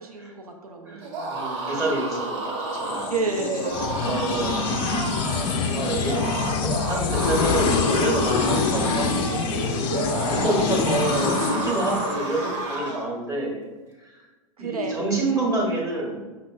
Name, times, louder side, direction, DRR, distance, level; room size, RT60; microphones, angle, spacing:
voice 1, 0.0-1.4 3.1-4.5 10.1-10.9 11.9-12.2 14.6-15.5, right 3 dB, 85° right, 3 dB, 0.4 m, -33 dB
voice 2, 0.9-3.1 4.0-4.7 5.4-6.2 6.6-10.0 10.3-13.6 14.0-14.2 14.6-16.2, right 2 dB, 15° right, -4 dB, 0.8 m, -28 dB
sound 1, 1.0-13.1, right 2 dB, 55° right, 0.8 m, -31 dB
sound 2, 2.8-12.5, left 5 dB, 25° left, 0.3 m, -25 dB
5.4 x 2.0 x 2.3 m, 1.2 s
figure-of-eight pair, 100°, 19 cm